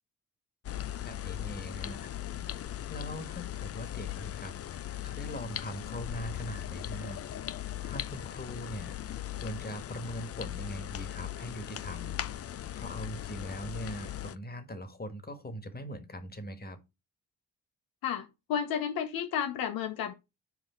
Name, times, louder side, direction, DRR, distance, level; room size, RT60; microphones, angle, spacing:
sound 1, 0.6-14.3, left 12 dB, 40° left, 0.5 m, -39 dB
voice 1, 1.0-2.1 2.9-7.2 7.8-12.2 12.7-16.8, equal, 25° left, 1.7 m, -41 dB
voice 2, 18.0-20.1, left 8 dB, 80° left, 0.8 m, -32 dB
6.2 x 4.8 x 4.4 m
supercardioid pair, 45°, 36 cm